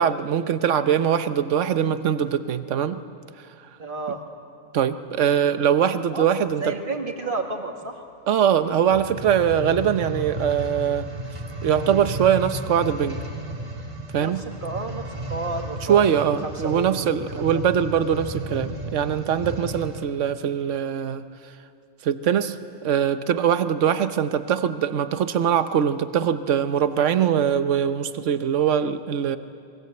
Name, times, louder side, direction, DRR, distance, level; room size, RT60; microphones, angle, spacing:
voice 1, 0.0-3.0 4.7-6.7 8.3-11.1 11.6-13.2 14.1-14.4 15.8-21.2 22.0-22.6 22.8-29.4, right 8 dB, 65° right, 11 dB, 1.2 m, -22 dB
voice 2, 3.8-4.2 6.1-6.3 6.6-8.0 14.2-17.5, right 3 dB, 40° right, 3 dB, 2.1 m, -32 dB
sound 1, 8.9-20.1 20.7-20.8, right 1 dB, 25° right, 2.2 m, -34 dB
27.0 x 22.0 x 7.9 m, 2.4 s
omnidirectional pair, 1.4 m